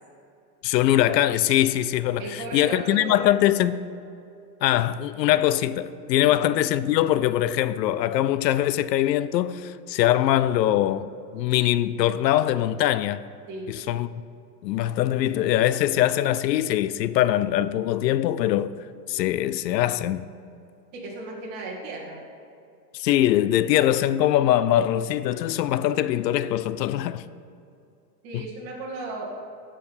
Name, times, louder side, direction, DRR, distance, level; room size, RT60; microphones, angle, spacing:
voice 1, 0.6-3.8 4.6-11.1 11.3-13.2 13.7-14.1 14.6-18.7 19.1-20.3 22.9-27.2 28.3-28.4, left 12 dB, 80° left, 0.6 m, -22 dB
voice 2, 2.2-3.3 6.2-6.4 13.5-13.7 20.9-22.2 28.2-29.4, right 2 dB, 35° right, 2.1 m, -35 dB
13.5 x 5.1 x 5.6 m
supercardioid pair, 160°, 50 cm